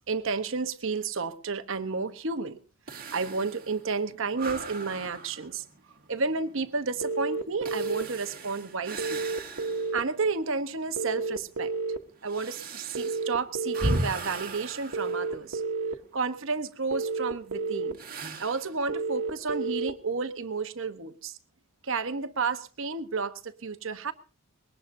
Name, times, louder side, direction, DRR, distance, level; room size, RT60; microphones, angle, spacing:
voice 1, 0.1-2.6 2.9-5.7 6.1-9.2 9.9-11.7 12.2-15.6 16.1-18.0 18.4-21.4 21.8-24.1, right 4 dB, 60° right, 11 dB, 1.0 m, -31 dB
sound 1, 2.9-10.1 10.5-10.6 11.3-16.0 17.9-18.8, right 2 dB, 40° right, 2.1 m, -37 dB
sound 2, 7.0-8.0 9.0-10.0 11.0-12.0 12.9-14.0 14.9-15.9 16.9-17.9 18.9-19.9, right 4 dB, 85° right, 1.2 m, -30 dB
21.5 x 18.5 x 2.7 m, 0.37 s
head